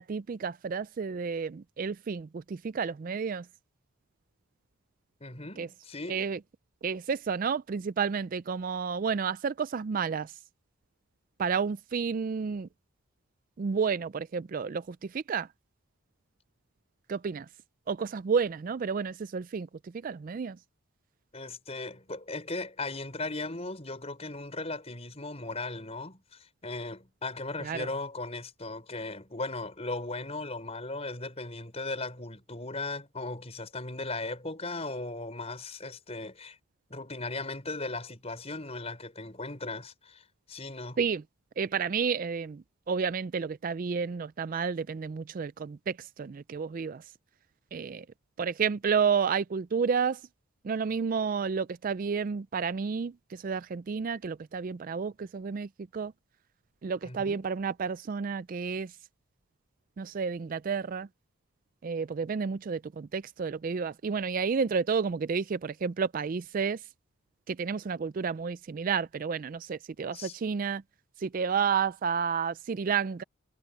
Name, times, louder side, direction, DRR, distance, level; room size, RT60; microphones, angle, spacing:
voice 1, 0.0-3.4 5.6-5.7 6.1-6.4 6.8-10.3 11.4-12.7 13.6-15.5 17.1-17.5 17.9-19.7 20.0-20.6 27.6-27.9 41.0-41.2 41.6-47.0 47.7-48.0 48.4-50.2 50.6-56.1 56.8-58.9 60.0-61.1 61.8-66.8 67.5-70.8 71.2-73.2, right 6 dB, 40° right, 0.3 m, -31 dB
voice 2, 5.2-6.3 21.3-36.6 36.9-41.0 57.0-57.4 70.1-70.4, left 2 dB, 30° left, 5.4 m, -37 dB
head